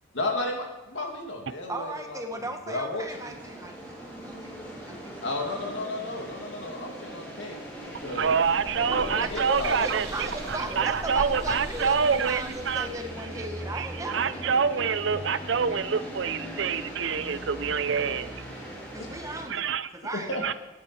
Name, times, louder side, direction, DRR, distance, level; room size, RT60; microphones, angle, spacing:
voice 1, 0.1-2.2 2.7-3.3 5.2-7.6 8.0-8.3 8.7-9.8 20.1-20.4, left 2 dB, 70° left, 1 dB, 2.4 m, -33 dB
voice 2, 1.7-4.0 4.2-4.5 4.9-5.0 9.2-14.7 18.9-19.6 19.9-20.5, right 1 dB, 15° right, 5 dB, 1.0 m, -37 dB
sound 1, 3.0-19.4, right 1 dB, 10° left, 5.6 m, -40 dB
sound 2, 7.8-13.1, right 1 dB, 50° right, 3.0 m, -41 dB
voice 3, 8.1-12.9 13.7-18.3 19.5-19.9 20.4-20.5, right 6 dB, 70° right, 14 dB, 0.6 m, -26 dB
14.5 x 10.0 x 4.4 m, 1.0 s
head